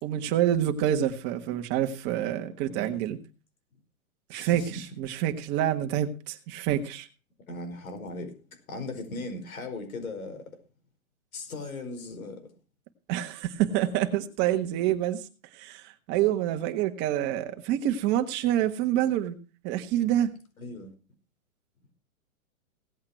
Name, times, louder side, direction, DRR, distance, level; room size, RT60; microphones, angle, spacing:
voice 1, 0.0-3.2 4.3-7.1 13.1-15.3 15.5-19.4 19.6-20.3, right 11 dB, 25° right, 1.5 m, -27 dB
voice 2, 2.6-3.0 4.3-4.8 7.5-8.3 8.7-10.5 11.3-12.4 20.6-20.9, left 2 dB, 75° left, 5.2 m, -38 dB
17.5 x 8.7 x 4.5 m
hypercardioid pair, 155°, 42 cm